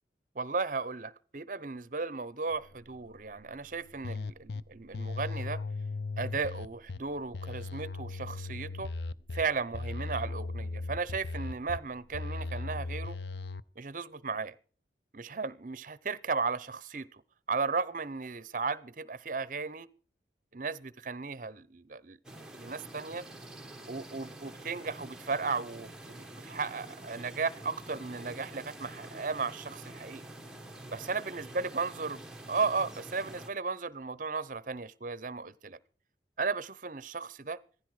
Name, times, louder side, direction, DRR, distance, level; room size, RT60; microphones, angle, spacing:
voice 1, 0.3-5.6 6.2-8.9 9.3-13.2 13.8-14.5 15.1-17.2 17.5-19.9 20.5-23.3 23.9-30.2 30.9-35.8 36.4-37.6, right 4 dB, 45° right, 0.7 m, -35 dB
sound 1, 2.5-12.5, left 1 dB, 35° left, 4.6 m, -60 dB
sound 2, 4.0-4.6 4.9-7.0 7.3-9.4 9.7-11.8 12.1-13.6, left 3 dB, 70° left, 0.6 m, -37 dB
sound 3, 22.2-33.5, right 1 dB, 5° right, 1.3 m, -47 dB
16.0 x 14.5 x 4.8 m
head